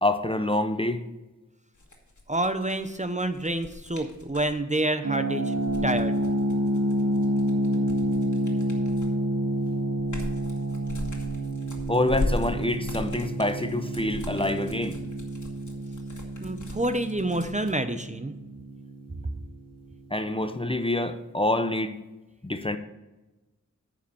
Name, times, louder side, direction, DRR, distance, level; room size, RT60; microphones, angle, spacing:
voice 1, 0.0-1.0 7.7-7.8 11.9-15.0 20.1-22.0 22.4-22.8, left 1 dB, 15° left, 8 dB, 0.6 m, -26 dB
sound 1, 1.7-4.5 5.5-9.2 9.7-17.7, left 2 dB, 65° left, 1.8 m, -37 dB
voice 2, 2.3-5.5 5.8-6.1 16.4-18.3, right 1 dB, 25° right, 9 dB, 0.6 m, -28 dB
sound 2, 5.0-19.8, right 1 dB, 50° right, 1.2 m, -29 dB
9.6 x 5.3 x 6.8 m, 1.1 s
wide cardioid pair, 65°, 32 cm